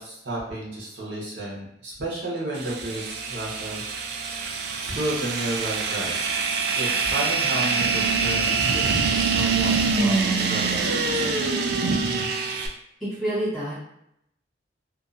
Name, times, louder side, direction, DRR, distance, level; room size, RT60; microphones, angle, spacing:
voice 1, 0.0-4.0 4.8-6.3 6.7-11.5, right 1 dB, 75° right, -5 dB, 0.9 m, -32 dB
sound 1, 2.5-12.7, right 4 dB, 55° right, 0.3 m, -25 dB
voice 2, 13.0-13.7, right 1 dB, ahead, -11 dB, 1.3 m, -27 dB
2.7 x 2.3 x 2.4 m, 0.78 s
head